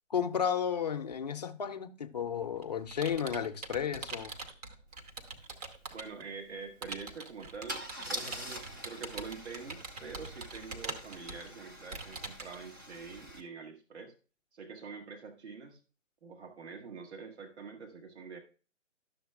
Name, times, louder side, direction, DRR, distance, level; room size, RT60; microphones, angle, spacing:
voice 1, 0.1-4.4, left 8 dB, 35° left, 0.5 m, -33 dB
Computer keyboard, 2.2-6.2 6.8-12.6, right 3 dB, 30° right, 0.9 m, -43 dB
Car / Engine starting / Idling, 5.1-5.2 5.4-5.7 7.7-13.4, equal, 15° right, 0.5 m, -45 dB
voice 2, 5.9-14.1 14.5-15.8 16.2-18.4, right 5 dB, 60° right, 1.7 m, -45 dB
11.5 x 6.8 x 2.3 m
figure-of-eight pair, 145°, 37 cm